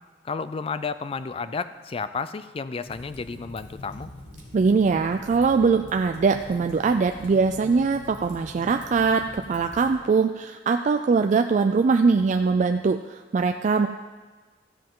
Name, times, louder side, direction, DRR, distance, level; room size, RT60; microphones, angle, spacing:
voice 1, 0.2-4.1, left 5 dB, 30° left, 13 dB, 0.4 m, -32 dB
Fire, 2.8-9.9, left 1 dB, 85° left, 3.0 m, -44 dB
voice 2, 4.5-13.9, right 4 dB, 40° right, 6 dB, 0.3 m, -22 dB
14.5 x 7.7 x 3.8 m, 1.3 s
head